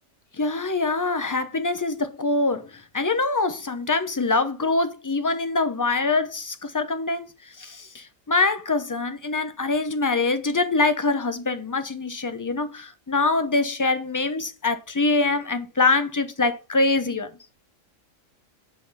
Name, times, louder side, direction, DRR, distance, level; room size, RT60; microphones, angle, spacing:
voice 1, 0.4-2.7 2.9-7.3 7.6-17.3, left 3 dB, 25° left, 0.4 m, -24 dB
9.9 x 3.9 x 4.0 m
omnidirectional pair, 1.4 m